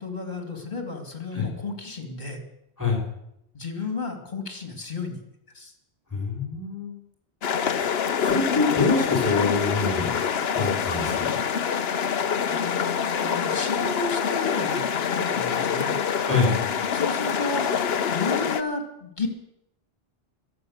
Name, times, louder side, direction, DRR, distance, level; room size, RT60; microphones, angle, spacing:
voice 1, 0.0-2.4 3.5-5.2 5.5-5.7 12.4-15.9 16.9-17.7 18.1-19.3, left 3 dB, 45° left, 4 dB, 2.5 m, -32 dB
voice 2, 6.1-6.9 7.7-7.9 8.2-10.1 10.5-11.4 16.3-16.6, left 4 dB, 15° left, -2 dB, 3.5 m, -25 dB
sound 1, 7.4-18.6, left 7 dB, 70° left, 1.1 m, -26 dB
23.0 x 7.8 x 6.5 m, 0.83 s
omnidirectional pair, 1.1 m